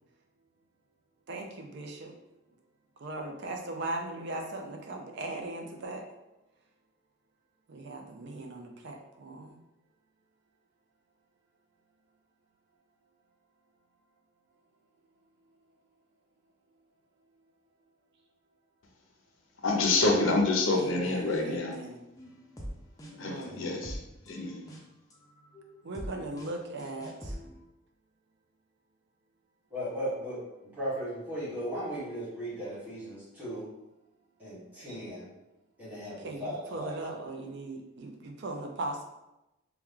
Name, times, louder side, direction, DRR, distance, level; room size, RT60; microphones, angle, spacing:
voice 1, 1.3-2.1 3.0-6.0 7.7-9.6 20.7-22.0 23.1-23.6 25.8-27.4 36.2-39.0, right 2 dB, 50° right, 2 dB, 0.5 m, -39 dB
voice 2, 19.6-21.8 23.2-24.0 24.3-24.7, left 2 dB, 60° left, 1 dB, 0.6 m, -27 dB
sound 1, 21.0-21.7 22.2-27.6, equal, 15° left, 0.5 m, -44 dB
voice 3, 29.7-30.4 30.7-33.7 34.4-35.3 35.8-37.2, equal, 10° right, -11 dB, 1.4 m, -37 dB
3.0 x 2.3 x 3.6 m, 0.94 s
head